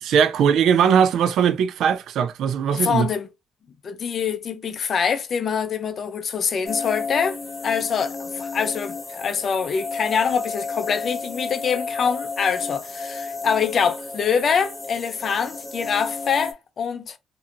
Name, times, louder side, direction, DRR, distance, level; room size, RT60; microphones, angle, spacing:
voice 1, 0.0-3.1, right 7 dB, 75° right, 0.4 m, -19 dB
voice 2, 2.7-3.3 3.8-7.4 7.6-17.2, left 6 dB, 55° left, 0.5 m, -24 dB
sound 1, 6.6-16.5, left 4 dB, 15° left, 0.8 m, -32 dB
2.7 x 2.6 x 2.5 m
cardioid pair, 90°, 0 cm